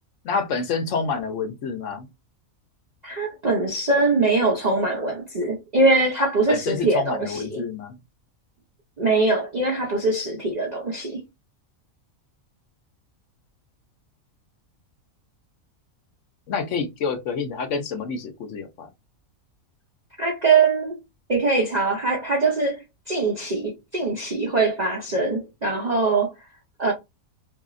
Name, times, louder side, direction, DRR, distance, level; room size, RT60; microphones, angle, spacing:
voice 1, 0.2-2.1 6.5-8.0 16.5-18.9, left 5 dB, 65° left, 0.9 m, -28 dB
voice 2, 3.0-7.6 9.0-11.2 20.2-21.0 21.3-26.3 26.8-26.9, right 3 dB, 55° right, 0.5 m, -22 dB
2.8 x 2.7 x 2.4 m
omnidirectional pair, 1.5 m